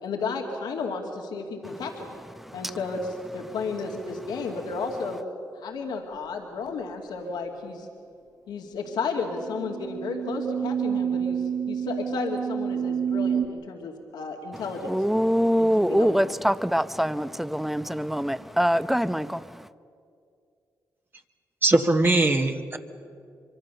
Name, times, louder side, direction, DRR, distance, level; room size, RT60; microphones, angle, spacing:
voice 1, 0.0-2.1 2.5-5.2 5.5-7.9 8.5-14.9 15.6-16.4, left 4 dB, 80° left, 2 dB, 2.4 m, -33 dB
sound 1, 9.0-13.5, right 8 dB, 50° right, 2.2 m, -29 dB
voice 2, 14.9-19.7, equal, 5° right, 15 dB, 0.8 m, -24 dB
voice 3, 21.6-22.8, right 2 dB, 30° right, 5 dB, 1.6 m, -21 dB
24.5 x 24.0 x 6.8 m, 2.4 s
supercardioid pair, 60°, 7 cm